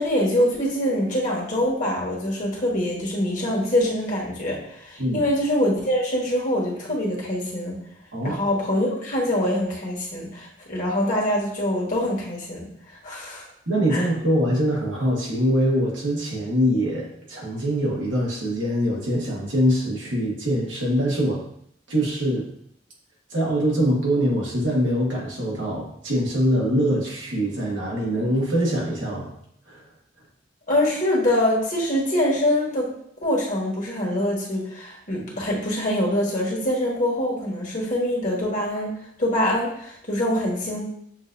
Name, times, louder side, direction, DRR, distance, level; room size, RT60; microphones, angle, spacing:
voice 1, 0.0-7.8 8.2-13.5 13.9-14.0 30.7-32.9 33.2-40.8, left 1 dB, 45° left, -3 dB, 1.3 m, -24 dB
voice 2, 13.7-21.4 21.9-22.5 23.3-29.3 29.7-29.8, equal, 75° right, -3 dB, 1.4 m, -23 dB
6.9 x 2.6 x 2.6 m, 0.69 s
head